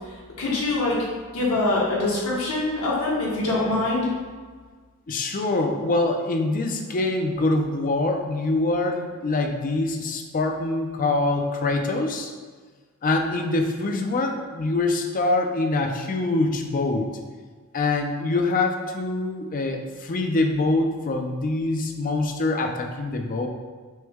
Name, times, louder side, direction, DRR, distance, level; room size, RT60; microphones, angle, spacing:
voice 1, 0.4-1.0 1.3-4.1, left 2 dB, 65° left, -5 dB, 1.0 m, -24 dB
voice 2, 5.1-12.3 13.0-17.1 17.7-23.5, left 2 dB, 40° left, 4 dB, 0.4 m, -24 dB
6.1 x 2.1 x 3.5 m, 1.5 s
head